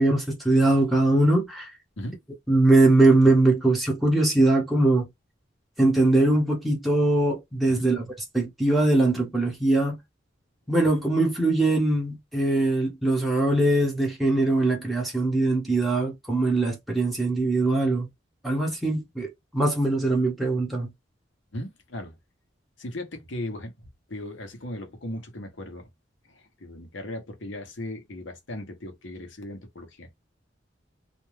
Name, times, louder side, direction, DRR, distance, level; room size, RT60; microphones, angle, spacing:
voice 1, 0.0-1.7 2.5-5.1 5.8-8.0 8.3-10.0 10.7-18.1 18.4-20.9, right 2 dB, ahead, 0.8 m, -21 dB
voice 2, 21.5-22.1 22.8-23.7 24.1-25.9 26.3-30.1, left 1 dB, 75° left, 1.0 m, -37 dB
2.5 x 2.2 x 3.1 m
head